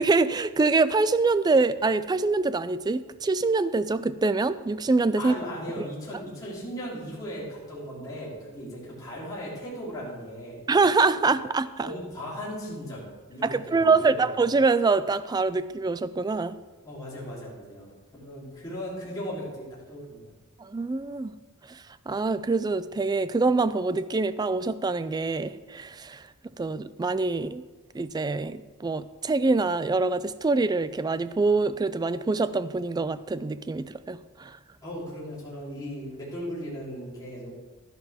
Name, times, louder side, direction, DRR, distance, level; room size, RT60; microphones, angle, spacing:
voice 1, 0.0-5.3 5.8-5.9 10.7-11.9 13.4-16.6 20.6-21.4 21.7-26.2 26.6-27.6 27.9-34.6, right 3 dB, 20° right, 0.3 m, -25 dB
voice 2, 5.2-10.6 11.8-14.3 16.8-20.3 34.8-37.5, equal, 15° left, 3.4 m, -37 dB
12.0 x 11.0 x 3.5 m
head